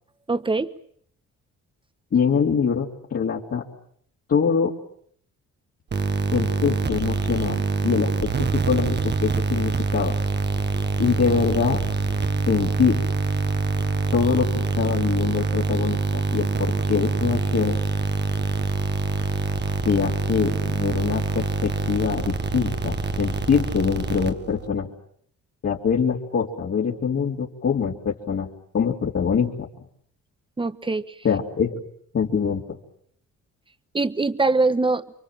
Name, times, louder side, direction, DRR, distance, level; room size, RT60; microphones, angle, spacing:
voice 1, 0.3-0.7 30.6-31.2 33.9-35.0, right 3 dB, 15° right, 13 dB, 1.3 m, -22 dB
voice 2, 2.1-3.6 4.3-4.7 6.3-10.1 11.0-11.8 12.5-13.0 14.1-17.8 19.8-24.9 25.6-28.5 28.7-29.7 31.2-31.8 32.1-32.6, left 6 dB, 50° left, -3 dB, 3.3 m, -24 dB
sound 1, 5.9-24.7, right 4 dB, 35° right, 1.5 m, -25 dB
29.0 x 24.0 x 7.5 m, 0.65 s
cardioid pair, 90°, 30 cm